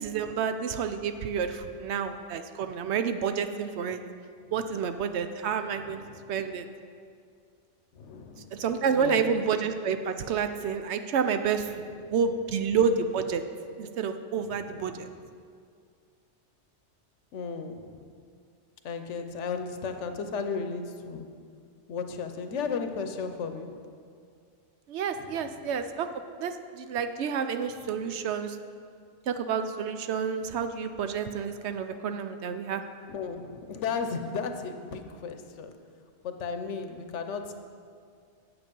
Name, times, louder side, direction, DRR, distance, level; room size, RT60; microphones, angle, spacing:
voice 1, 0.0-4.0 4.5-6.0 6.3-6.7 8.5-13.4 13.8-15.1 24.9-26.1 26.4-28.6 29.3-32.8, right 6 dB, 70° right, 9 dB, 0.9 m, -29 dB
voice 2, 5.8-6.1 7.9-8.6 8.9-9.3 12.1-12.2 14.5-15.0 17.3-18.1 18.8-21.2 21.9-23.7 25.2-25.5 33.1-35.7 36.2-37.5, left 5 dB, 80° left, 7 dB, 1.1 m, -35 dB
8.9 x 7.8 x 5.3 m, 2.2 s
omnidirectional pair, 1.2 m